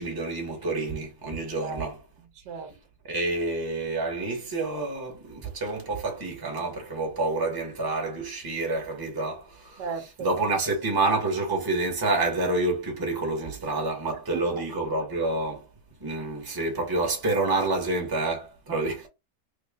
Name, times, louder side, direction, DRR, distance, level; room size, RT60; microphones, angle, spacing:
voice 1, 0.0-2.0 3.1-9.8 10.2-15.7 16.0-19.0, right 2 dB, 15° right, 0.9 m, -28 dB
voice 2, 2.2-2.7 9.8-10.4 14.3-14.6 18.7-19.1, right 5 dB, 80° right, 1.2 m, -36 dB
3.3 x 2.4 x 3.5 m
omnidirectional pair, 1.8 m